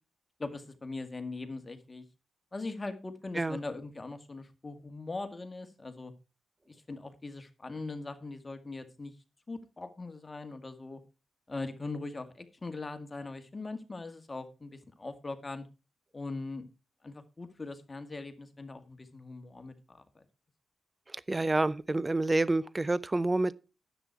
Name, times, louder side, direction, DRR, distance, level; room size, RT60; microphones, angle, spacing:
voice 1, 0.4-2.1 2.5-6.1 6.7-9.1 9.5-11.0 11.5-15.7 16.1-16.7 17.0-20.2, left 3 dB, 30° left, 1.9 m, -41 dB
voice 2, 21.1-23.5, right 2 dB, 25° right, 0.5 m, -28 dB
10.0 x 8.2 x 4.5 m
hypercardioid pair, 40°, 0 cm